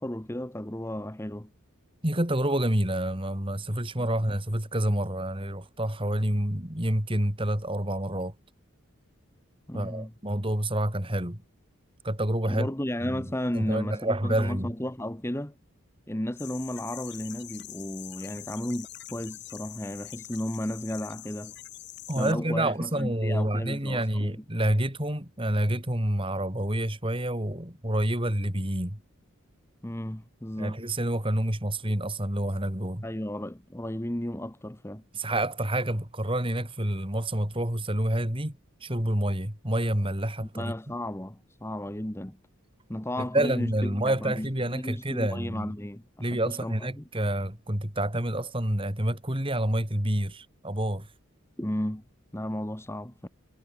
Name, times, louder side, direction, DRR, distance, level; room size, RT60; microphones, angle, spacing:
voice 1, 0.0-1.5 9.7-10.1 12.5-15.5 16.1-21.5 22.1-24.4 29.8-30.8 33.0-35.0 40.5-42.4 42.9-47.0 51.6-52.0 52.3-53.3, left 1 dB, 10° left, 1.2 m, -34 dB
voice 2, 2.0-8.3 9.7-11.4 12.0-12.7 13.0-14.7 22.1-29.0 30.6-33.0 35.1-40.7 43.2-45.7 46.2-51.1, right 1 dB, 25° right, 3.6 m, -28 dB
sound 1, 16.4-22.3, left 15 dB, 50° left, 2.9 m, -44 dB
head